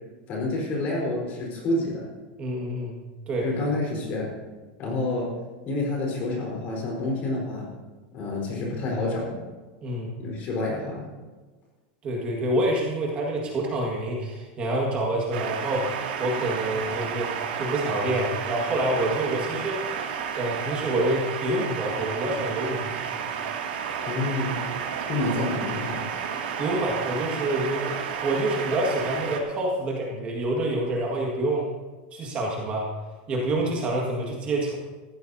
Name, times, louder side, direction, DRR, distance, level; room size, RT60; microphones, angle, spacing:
voice 1, 0.3-2.1 3.4-4.3 4.8-5.3 5.6-7.7 8.1-9.4 10.2-11.1 24.0-24.6 25.1-26.0, left 2 dB, 30° left, -2 dB, 4.4 m, -28 dB
voice 2, 2.4-3.0 3.3-3.5 9.8-10.2 12.0-19.9 20.3-23.3 26.6-31.7 32.1-32.9 33.3-34.8, right 1 dB, 25° right, -2 dB, 1.9 m, -27 dB
sound 1, 15.3-29.4, right 7 dB, 80° right, 2.5 m, -31 dB
19.0 x 14.5 x 2.8 m, 1.3 s
supercardioid pair, 175°, 5 cm